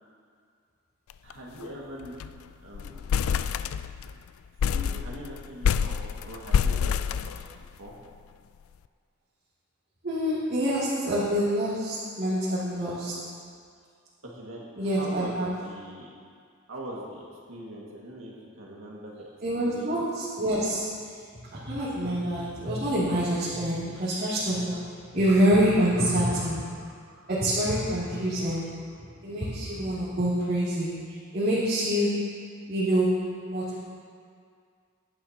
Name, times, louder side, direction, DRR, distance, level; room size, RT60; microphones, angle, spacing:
sound 1, 1.1-1.3 1.6-1.7 2.0-2.4 2.7-4.1 4.6-7.9, left 7 dB, 80° left, 0.3 m, -27 dB
voice 1, 1.2-2.2 2.6-3.1 4.7-7.4 7.8-8.0 14.2-16.1 16.7-19.3 19.5-20.0, right 1 dB, 75° right, -4 dB, 2.0 m, -41 dB
voice 2, 10.0-13.1 14.8-15.5 19.4-20.9 21.5-24.8 25.1-26.8 27.3-28.7 29.2-30.9 31.3-32.2 32.7-33.2 33.5-33.8, equal, 50° right, -12 dB, 2.6 m, -26 dB
17.0 x 10.5 x 2.9 m, 2.1 s
head